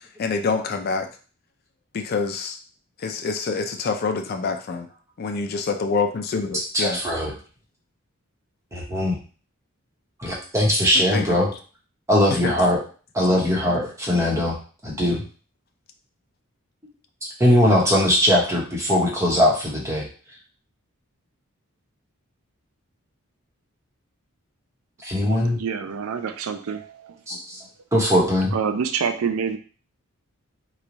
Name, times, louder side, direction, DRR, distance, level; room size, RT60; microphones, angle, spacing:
voice 1, 0.2-1.1 1.9-2.6 3.0-4.9 5.2-7.0 11.1-11.4 12.3-12.6, left 4 dB, 45° left, 6 dB, 0.4 m, -26 dB
voice 2, 6.5-7.3 8.7-9.1 10.2-11.5 12.1-12.8 13.1-14.5 14.8-15.2 17.4-20.0 25.0-25.6 27.3-27.6 27.9-28.5, left 1 dB, 15° right, -4 dB, 1.0 m, -20 dB
voice 3, 25.6-27.4 28.5-29.6, right 6 dB, 75° right, 7 dB, 0.4 m, -27 dB
3.1 x 2.3 x 3.9 m, 0.38 s
head